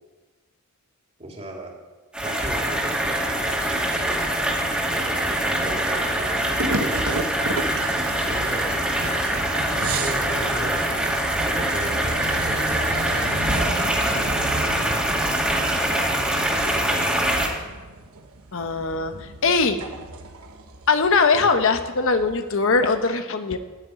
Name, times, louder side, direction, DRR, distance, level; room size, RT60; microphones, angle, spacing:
voice 1, 1.2-1.7 2.2-4.2 4.9-7.1 8.2-9.5 9.9-10.9 11.4-13.9 14.2-15.4 16.3-17.2 19.1-19.2 21.3-21.5, right 1 dB, 30° right, -2 dB, 3.5 m, -36 dB
sound 1, 2.1-17.5, right 1 dB, 5° right, 2.5 m, -24 dB
sound 2, 6.6-23.0, right 2 dB, 80° right, 1.3 m, -34 dB
voice 2, 18.5-19.8 20.9-23.6, left 4 dB, 65° left, 8 dB, 1.0 m, -21 dB
13.5 x 7.1 x 9.7 m, 1.3 s
head